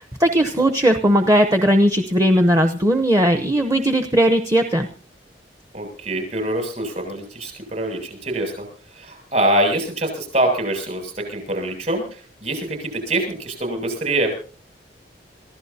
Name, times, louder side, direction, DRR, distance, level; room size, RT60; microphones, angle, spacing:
voice 1, 0.0-4.9, equal, 20° right, 6 dB, 0.9 m, -17 dB
voice 2, 5.7-8.6 9.0-14.3, right 1 dB, 45° right, 5 dB, 7.2 m, -24 dB
27.0 x 15.0 x 2.8 m, 0.38 s
head